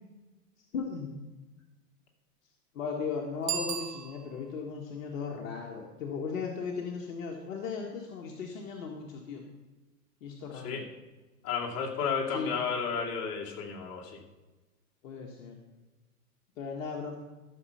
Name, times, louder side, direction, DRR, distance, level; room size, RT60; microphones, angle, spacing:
voice 1, 0.7-1.2 2.7-9.4 10.2-10.9 12.3-12.6 15.0-15.6 16.6-17.2, left 5 dB, 55° left, 0 dB, 1.7 m, -37 dB
Bicycle bell, 3.4-4.6, right 7 dB, 40° right, 1.7 m, -36 dB
voice 2, 11.4-14.2, left 6 dB, 30° left, -2 dB, 2.7 m, -32 dB
14.5 x 6.7 x 5.7 m, 1.1 s
figure-of-eight pair, 105°, 48 cm